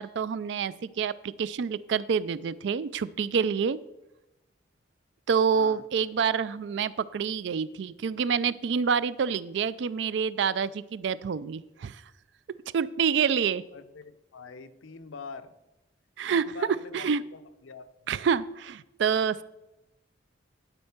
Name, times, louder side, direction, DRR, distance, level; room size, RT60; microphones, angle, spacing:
voice 1, 0.0-3.8 5.3-12.0 12.7-13.6 16.2-17.2 18.1-19.4, right 6 dB, 60° right, 18 dB, 0.3 m, -27 dB
voice 2, 5.5-5.8 13.7-15.6 16.3-18.1, left 4 dB, 80° left, 10 dB, 0.6 m, -44 dB
11.5 x 4.4 x 5.8 m, 0.97 s
head